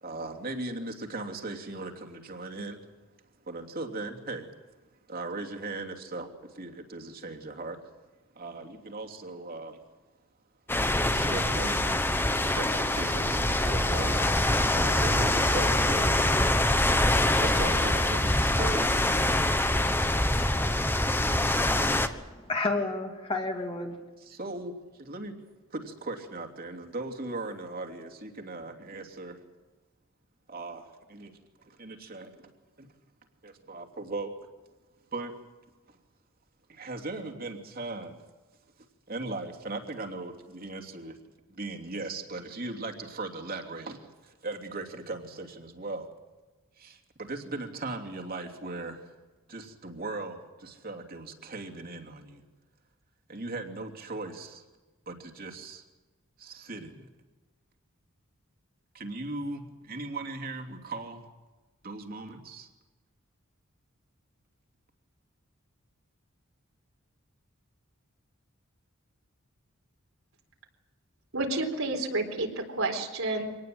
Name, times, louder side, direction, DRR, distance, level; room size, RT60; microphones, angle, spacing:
voice 1, 0.0-2.8 3.5-4.5 5.1-6.3 6.5-7.8 8.3-9.8 11.1-11.9 12.5-14.2 14.7-16.2 17.4-19.0 24.2-24.7 25.0-25.3 25.7-29.4 30.5-31.3 31.7-32.5 32.8-32.9 33.4-34.3 35.1-35.3 36.7-38.2 39.1-41.2 41.5-46.1 46.8-49.0 49.5-52.4 53.3-54.6 55.1-55.8 56.4-57.1 58.9-61.2 61.8-62.7, right 2 dB, 45° right, 3 dB, 3.0 m, -38 dB
sound 1, 10.7-22.1, left 1 dB, 10° left, 1.1 m, -25 dB
voice 2, 21.7-24.0, left 2 dB, 25° left, 3 dB, 2.7 m, -32 dB
voice 3, 71.3-73.6, right 2 dB, 80° right, 3 dB, 4.1 m, -30 dB
25.5 x 19.0 x 7.8 m, 1.2 s
head